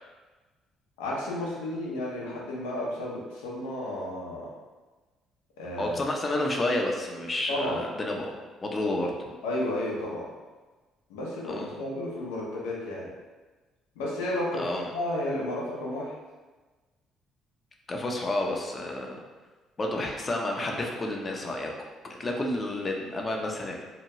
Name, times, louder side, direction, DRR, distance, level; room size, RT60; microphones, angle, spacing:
voice 1, 1.0-4.5 5.6-6.0 7.5-7.8 9.4-10.3 11.1-13.1 14.0-16.1, left 1 dB, 90° left, -4 dB, 0.6 m, -32 dB
voice 2, 5.8-9.1 11.4-11.7 14.5-14.9 17.9-19.2 19.8-21.7 22.0-23.8, left 1 dB, 35° left, 0 dB, 0.5 m, -30 dB
2.8 x 2.2 x 2.9 m, 1.3 s
hypercardioid pair, 60°, 0 cm